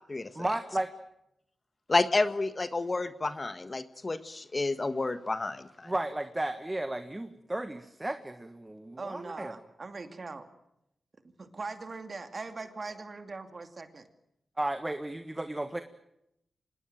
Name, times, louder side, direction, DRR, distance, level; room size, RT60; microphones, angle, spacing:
voice 1, 0.3-0.9 5.8-9.5 14.6-15.8, right 1 dB, 20° right, 9 dB, 1.5 m, -34 dB
voice 2, 1.9-5.9, left 3 dB, 35° left, 11 dB, 1.4 m, -30 dB
voice 3, 9.0-10.5 11.2-14.1, right 3 dB, 45° right, 7 dB, 2.6 m, -41 dB
25.5 x 19.5 x 9.2 m, 0.83 s
cardioid pair, 70°, 0 cm